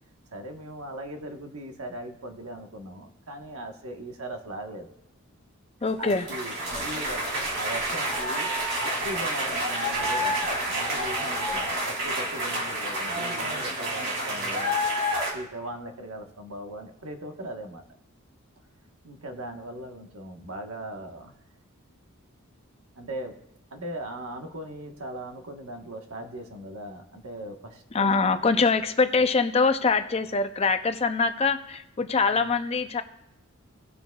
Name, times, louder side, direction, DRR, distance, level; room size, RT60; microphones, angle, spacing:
voice 1, 0.3-4.9 6.0-8.5 9.0-14.8 15.3-17.8 19.0-21.3 22.9-23.3 23.7-28.2 32.2-32.5, right 1 dB, 85° right, 3 dB, 1.3 m, -39 dB
voice 2, 5.8-6.3 27.9-33.0, left 4 dB, 30° left, 9 dB, 0.5 m, -24 dB
sound 1, 6.1-15.3, equal, 60° right, 2.9 m, -29 dB
19.0 x 6.9 x 2.3 m, 0.84 s
head